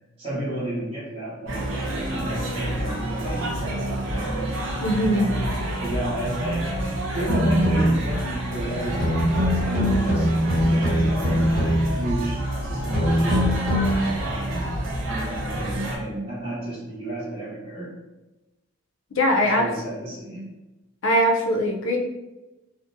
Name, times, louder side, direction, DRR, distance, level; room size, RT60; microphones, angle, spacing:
voice 1, 0.2-4.5 5.1-5.5 5.8-6.7 7.1-10.3 10.6-13.5 14.2-14.7 15.1-17.9 19.4-20.4, right 1 dB, 25° right, -13 dB, 0.8 m, -32 dB
sound 1, 1.5-16.0, right 1 dB, 60° right, 0.5 m, -28 dB
voice 2, 4.8-5.4 19.2-19.7 21.0-22.0, equal, 65° left, 1 dB, 0.4 m, -21 dB
sound 2, 7.3-8.1 9.0-12.0 12.9-14.0, equal, 5° left, 0.8 m, -22 dB
2.5 x 2.0 x 2.6 m, 1.0 s
head